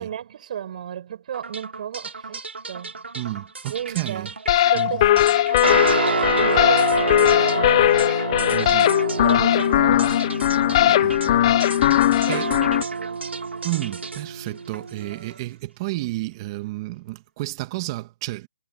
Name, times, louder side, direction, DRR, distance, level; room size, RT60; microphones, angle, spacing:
voice 1, 0.0-3.1 3.7-4.3 4.7-5.1 5.5-7.9 8.7-10.3 10.7-11.1 12.1-13.2, right 9 dB, 40° right, 6.1 m, -34 dB
sound 1, 1.3-15.4, right 4 dB, 90° right, 3.0 m, -37 dB
voice 2, 3.1-4.3 4.7-5.1 8.5-8.9 10.9-11.2 12.3-12.5 13.6-18.5, right 19 dB, 25° right, 1.9 m, -31 dB
sound 2, 4.5-12.8, left 13 dB, 30° left, 0.6 m, -19 dB
sound 3, 5.6-15.3, right 5 dB, 70° right, 5.1 m, -28 dB
hypercardioid pair, 160°, 6 cm